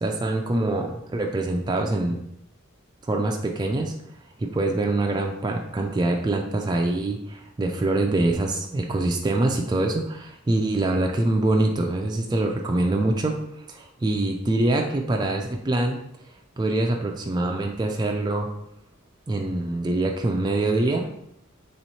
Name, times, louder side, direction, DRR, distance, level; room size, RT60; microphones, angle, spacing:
voice 1, 0.0-2.2 3.1-3.9 4.4-13.4 13.7-16.0 16.6-18.5 19.3-21.1, right 2 dB, 20° right, 2 dB, 0.3 m, -24 dB
3.1 x 3.0 x 4.2 m, 0.75 s
head